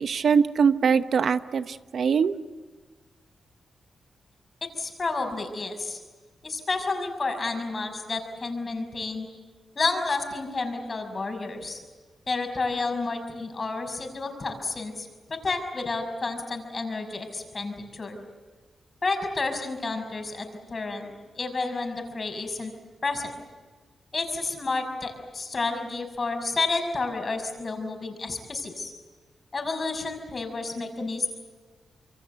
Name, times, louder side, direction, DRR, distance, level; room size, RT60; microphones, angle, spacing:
voice 1, 0.0-2.3, right 6 dB, 70° right, 12 dB, 0.8 m, -22 dB
voice 2, 4.8-6.0 6.4-9.3 9.7-11.8 12.3-18.2 19.0-22.7 23.0-23.4 24.1-28.9 29.5-31.3, left 3 dB, 45° left, 5 dB, 6.1 m, -30 dB
27.0 x 23.5 x 8.0 m, 1.4 s
cardioid pair, 55°, 0 cm